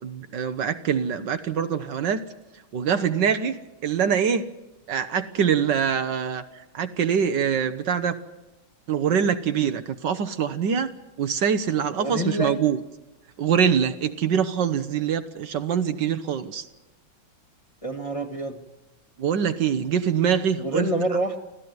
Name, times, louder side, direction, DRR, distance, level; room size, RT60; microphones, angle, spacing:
voice 1, 0.0-2.2 2.7-4.4 4.9-8.2 8.9-10.9 11.2-12.8 13.4-16.7 19.2-20.9, right 7 dB, 65° right, 10 dB, 1.6 m, -24 dB
voice 2, 12.0-12.6 17.8-18.6 20.6-21.4, right 1 dB, 20° left, 4 dB, 1.6 m, -27 dB
25.0 x 15.5 x 9.5 m, 1.0 s
omnidirectional pair, 2.2 m